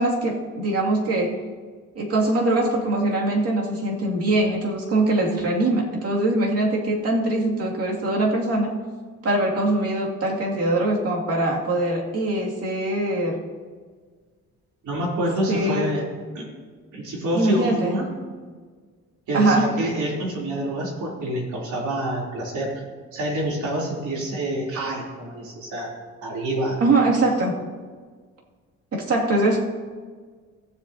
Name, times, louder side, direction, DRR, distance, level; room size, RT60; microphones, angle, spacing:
voice 1, 0.0-1.4 2.0-8.7 9.2-13.4 15.5-15.9 17.3-18.0 19.3-19.7 26.8-27.6 28.9-29.6, right 2 dB, 50° right, -2 dB, 2.4 m, -22 dB
voice 2, 14.8-16.1 16.3-16.5 16.9-18.1 19.3-22.7 23.1-25.9 26.2-26.8, right 1 dB, 75° right, -3 dB, 3.3 m, -27 dB
16.0 x 8.0 x 2.8 m, 1.5 s
cardioid pair, 90°, 30 cm